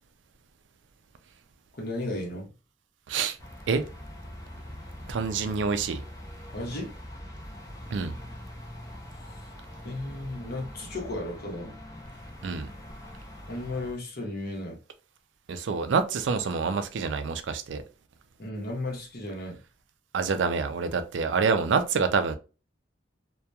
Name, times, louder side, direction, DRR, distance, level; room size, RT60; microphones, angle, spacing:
voice 1, 1.7-2.5 6.5-6.9 9.8-11.7 13.5-14.8 18.4-19.6, left 1 dB, 55° left, 0.9 m, -34 dB
sound 1, 3.4-13.9, left 1 dB, 20° left, 0.5 m, -43 dB
voice 2, 5.1-6.0 7.9-8.1 12.4-12.7 15.5-17.8 20.1-22.3, right 5 dB, 80° right, 0.4 m, -27 dB
2.8 x 2.2 x 2.2 m
head